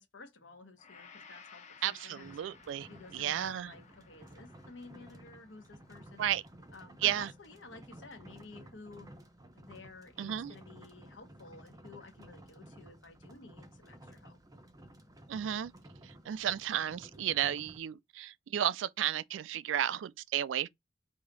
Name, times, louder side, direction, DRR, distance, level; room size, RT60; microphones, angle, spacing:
voice 1, 0.0-2.4 2.9-6.3 6.7-9.1 9.5-14.4, left 3 dB, 80° left, 1.2 m, -53 dB
Gong, 0.8-9.1 9.5-9.7, left 5 dB, 40° left, 0.8 m, -59 dB
voice 2, 1.8-2.9 3.1-3.7 6.2-6.4 7.0-7.3 10.2-10.5 15.3-15.7 16.0-20.7, right 11 dB, 80° right, 0.3 m, -33 dB
sound 1, 2.2-17.8, right 1 dB, 20° right, 0.7 m, -54 dB
4.8 x 2.8 x 4.0 m
head